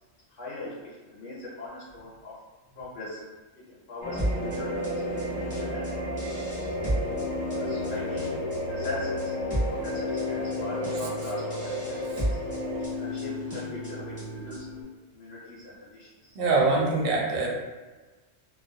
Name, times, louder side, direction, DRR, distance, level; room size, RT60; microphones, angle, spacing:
voice 1, 0.3-2.3 2.8-3.2 3.7-7.1 7.5-8.3 8.6-12.0 12.2-12.4 12.8-14.9 15.1-16.4, left 2 dB, 80° left, -8 dB, 0.9 m, -41 dB
sound 1, 4.0-12.9, equal, 45° left, 0.8 m, -33 dB
sound 2, 4.2-14.8, left 1 dB, 15° right, 0.8 m, -33 dB
voice 2, 16.3-17.5, right 3 dB, 60° right, -2 dB, 0.6 m, -24 dB
2.3 x 2.0 x 2.6 m, 1.3 s
omnidirectional pair, 1.3 m